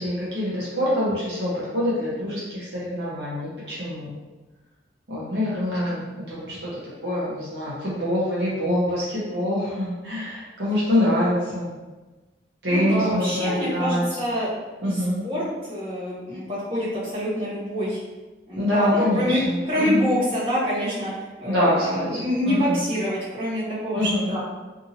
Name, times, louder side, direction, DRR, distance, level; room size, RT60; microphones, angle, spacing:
voice 1, 0.0-4.1 5.1-6.6 7.0-11.7 12.6-14.0 14.8-15.2 18.6-20.1 21.5-22.8 24.0-24.2, left 1 dB, 70° right, -8 dB, 0.9 m, -25 dB
voice 2, 12.7-14.5 14.9-18.0 18.5-19.4 19.7-21.1 21.4-24.4, equal, 30° right, -10 dB, 1.1 m, -26 dB
2.7 x 2.6 x 2.7 m, 1.2 s
head